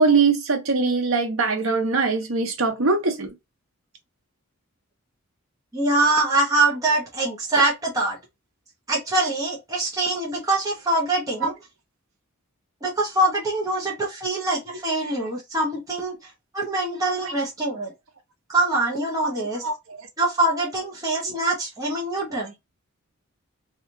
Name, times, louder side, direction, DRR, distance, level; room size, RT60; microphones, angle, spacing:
voice 1, 0.0-3.3 11.4-11.5 17.2-17.3 19.6-19.7 21.3-21.4, right 4 dB, 70° right, 0.9 m, -21 dB
voice 2, 5.7-8.2 8.9-11.5 12.8-16.1 16.5-17.9 18.5-19.6 20.2-22.5, right 2 dB, 15° right, 0.8 m, -24 dB
2.9 x 2.4 x 2.6 m
head